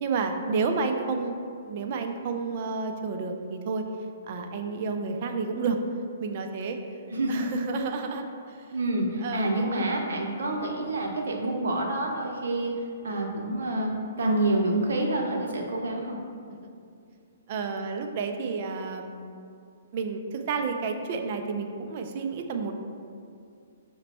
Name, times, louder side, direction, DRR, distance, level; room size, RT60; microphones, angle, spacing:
voice 1, 0.0-1.4 1.7-3.8 4.3-5.8 6.2-6.8 7.3-8.7 9.2-9.5 16.6-16.7 17.5-19.2 19.9-22.8, right 4 dB, 45° right, 4 dB, 0.4 m, -30 dB
voice 2, 7.1-7.5 8.7-12.7 13.0-13.9 14.2-16.1, right 1 dB, 75° right, 1 dB, 0.7 m, -27 dB
5.1 x 2.2 x 4.1 m, 2.4 s
hypercardioid pair, 150°, 0 cm